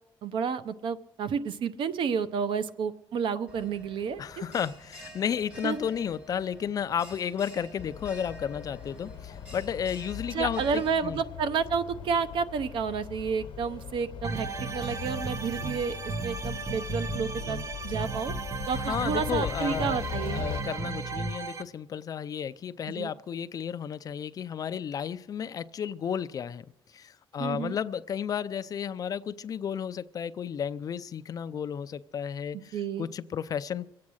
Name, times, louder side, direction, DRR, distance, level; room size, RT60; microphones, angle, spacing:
voice 1, 0.2-4.2 5.6-5.8 10.3-16.0 16.2-17.6 17.8-18.3 18.7-20.4 22.9-23.1 27.4-27.8 32.5-33.1, right 6 dB, 70° right, 12 dB, 0.8 m, -30 dB
Bell, 3.5-11.0, equal, 15° right, 4.4 m, -49 dB
voice 2, 4.2-11.2 18.9-20.0 20.3-26.6 26.9-33.9, left 8 dB, 45° left, 13 dB, 0.5 m, -33 dB
sound 1, 7.8-20.6, left 9 dB, 75° left, 1.0 m, -40 dB
sound 2, 14.2-21.6, right 4 dB, 35° right, 0.8 m, -34 dB
22.5 x 8.5 x 6.3 m, 0.93 s
cardioid pair, 155°, 9 cm